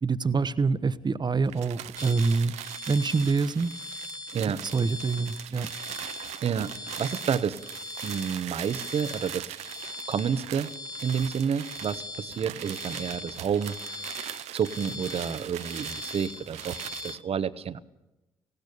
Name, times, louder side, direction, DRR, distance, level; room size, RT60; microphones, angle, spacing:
voice 1, 0.0-2.5 2.9-3.7 4.5-5.7, right 4 dB, 40° right, 13 dB, 1.2 m, -26 dB
sound 1, 1.4-17.2, right 13 dB, 75° right, 0.7 m, -41 dB
sound 2, 2.0-17.2, left 2 dB, 35° left, 1.6 m, -41 dB
voice 2, 6.4-7.6 8.0-9.5 10.1-10.7 11.0-14.0 14.5-17.8, right 7 dB, 60° right, 13 dB, 1.2 m, -30 dB
19.0 x 16.0 x 8.6 m, 0.98 s
hypercardioid pair, 40°, 11 cm